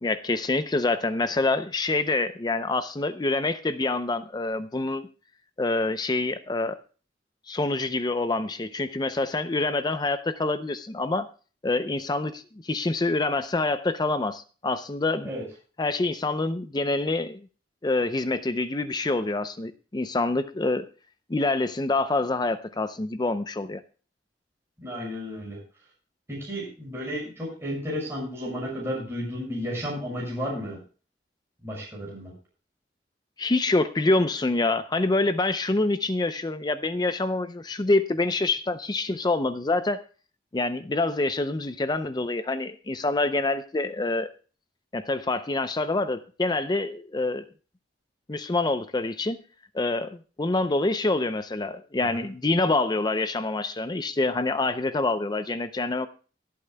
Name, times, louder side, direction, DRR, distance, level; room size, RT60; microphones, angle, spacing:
voice 1, 0.0-5.1 5.6-6.8 7.5-11.3 11.6-15.3 15.8-17.4 17.8-20.9 21.3-23.8 33.4-40.0 40.5-44.3 44.9-47.5 48.3-49.4 49.7-56.1, left 2 dB, 25° left, 11 dB, 0.5 m, -26 dB
voice 2, 24.8-25.6 26.3-30.8 31.6-32.3 52.0-52.2, equal, 15° right, -4 dB, 6.2 m, -33 dB
24.5 x 8.5 x 2.2 m, 0.37 s
head